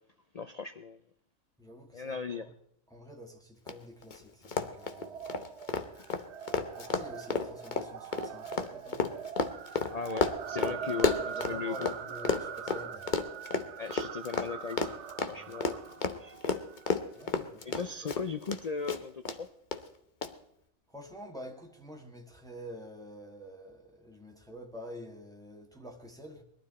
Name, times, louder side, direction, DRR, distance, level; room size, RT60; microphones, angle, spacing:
voice 1, 0.3-1.0 1.9-2.5 9.9-11.9 13.8-15.0 15.3-16.6 17.6-19.5, left 5 dB, 80° left, 0.3 m, -38 dB
voice 2, 1.6-2.5 2.9-5.3 6.6-9.2 10.5-13.1 15.3-15.7 17.1-18.2 20.9-26.4, equal, 5° left, 1.8 m, -48 dB
Run, 3.7-3.8 4.0-4.2 4.4-12.0 12.2-18.6 18.9-19.4 19.7-19.8 20.2-20.3, left 5 dB, 40° left, 0.9 m, -31 dB
sound 1, 4.6-17.1, right 8 dB, 60° right, 1.0 m, -42 dB
20.5 x 12.5 x 4.2 m
omnidirectional pair, 1.5 m